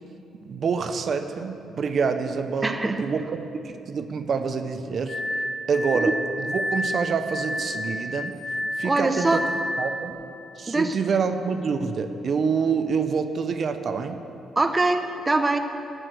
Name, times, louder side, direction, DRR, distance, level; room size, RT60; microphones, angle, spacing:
voice 1, 0.4-5.2 5.7-8.4 8.8-9.4 9.8-10.2 10.6-14.2, right 5 dB, 50° right, 8 dB, 0.7 m, -27 dB
voice 2, 2.6-3.0 5.9-6.1 8.8-9.4 10.7-10.9 14.6-15.6, right 2 dB, 20° right, 6 dB, 0.7 m, -23 dB
Glass, 5.1-10.1, equal, 35° left, 0.7 m, -30 dB
12.5 x 6.3 x 7.8 m, 2.8 s
cardioid pair, 90°, 0 cm